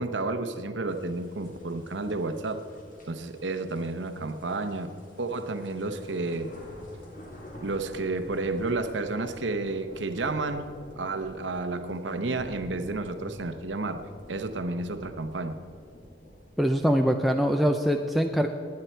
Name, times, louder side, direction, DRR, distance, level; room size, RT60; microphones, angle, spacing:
voice 1, 0.0-2.6 3.1-6.5 7.6-10.7 10.9-14.0 14.3-15.6, right 3 dB, 80° right, 9 dB, 0.9 m, -31 dB
sound 1, 0.9-16.6, equal, 45° left, 2.3 m, -49 dB
voice 2, 16.6-18.5, equal, ahead, 3 dB, 0.4 m, -23 dB
19.5 x 9.7 x 4.5 m, 2.5 s
head